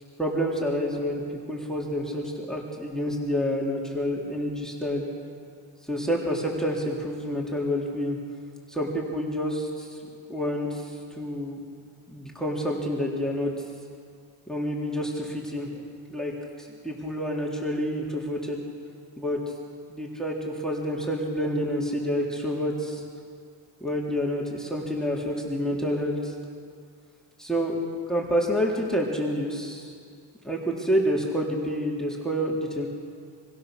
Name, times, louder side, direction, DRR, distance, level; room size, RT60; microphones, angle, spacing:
voice 1, 0.2-1.2 1.5-5.1 5.9-8.2 8.7-10.0 10.3-11.6 12.1-13.5 14.5-15.7 16.1-16.3 16.6-18.6 19.2-19.4 19.9-23.0 23.8-26.3 27.4-27.8 28.1-29.9 30.4-32.9, equal, ahead, -2 dB, 3.7 m, -28 dB
26.0 x 24.5 x 6.8 m, 2.2 s
wide cardioid pair, 90°, 50 cm